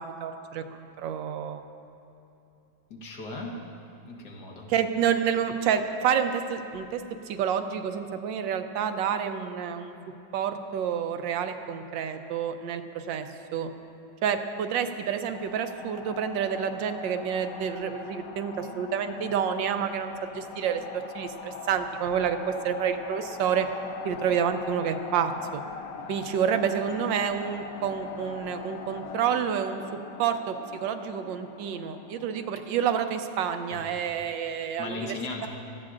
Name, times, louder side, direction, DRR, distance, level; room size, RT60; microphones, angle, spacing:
voice 1, 0.0-1.6 4.7-9.9 10.3-13.3 13.5-13.7 14.2-20.8 21.1-23.7 24.0-25.6 26.1-29.8 30.2-35.1, right 8 dB, 80° right, 7 dB, 1.3 m, -29 dB
voice 2, 2.9-3.6 4.0-4.7 33.7-33.9 34.8-35.5, left 2 dB, 65° left, -1 dB, 1.8 m, -37 dB
sound 1, 15.0-32.7, left 5 dB, 80° left, 0.8 m, -42 dB
17.0 x 13.0 x 2.5 m, 2.8 s
omnidirectional pair, 2.0 m